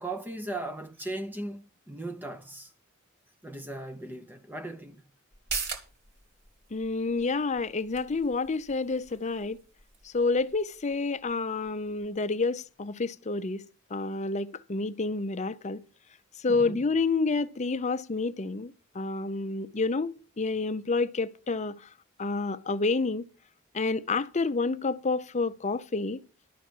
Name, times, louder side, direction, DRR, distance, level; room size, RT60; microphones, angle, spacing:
voice 1, 0.0-2.7 3.4-5.0 16.5-16.9, right 2 dB, 10° right, 0.7 m, -38 dB
sound 1, 5.3-12.4 12.8-12.9, right 4 dB, 45° right, 2.1 m, -42 dB
voice 2, 6.7-9.6 10.0-13.6 13.9-15.8 16.4-21.9 22.2-23.3 23.7-26.2, left 3 dB, 35° left, 0.6 m, -29 dB
12.0 x 5.9 x 8.4 m
head